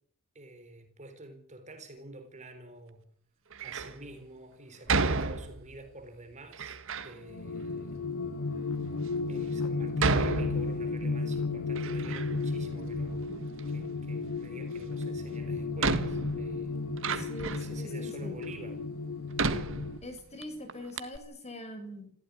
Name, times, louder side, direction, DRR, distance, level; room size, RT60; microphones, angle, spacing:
voice 1, 0.3-3.1 3.6-6.8 7.0-8.0 9.3-13.3 13.7-16.7 17.5-18.8, right 2 dB, 30° right, 4.0 m, -48 dB
Door, 3.5-4.0 4.9-5.9 6.5-7.2 7.9-8.0 8.7-8.8 10.0-11.1 11.5-12.5 12.8-13.7 15.0-15.1 15.8-17.8 18.4-18.5 19.4-20.4 20.7-20.8 21.0-21.2, right 4 dB, 60° right, 1.7 m, -32 dB
sound 1, 7.2-20.0, left 3 dB, 85° left, 1.5 m, -34 dB
voice 2, 16.7-18.4 20.0-22.1, left 1 dB, 30° left, 6.9 m, -43 dB
27.0 x 16.0 x 9.7 m
head